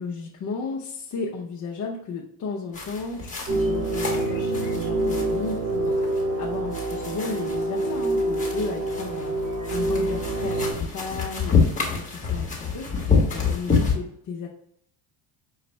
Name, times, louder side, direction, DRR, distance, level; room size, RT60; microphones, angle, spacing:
voice 1, 0.0-9.3 9.7-12.0 12.3-12.9 13.3-14.5, left 4 dB, 40° left, -2 dB, 0.6 m, -34 dB
sound 1, 2.7-13.9, left 5 dB, 15° left, 1.2 m, -28 dB
sound 2, 3.5-10.7, right 2 dB, 50° right, 1.3 m, -26 dB
6.0 x 2.4 x 3.1 m, 0.70 s
cardioid pair, 120°, 47 cm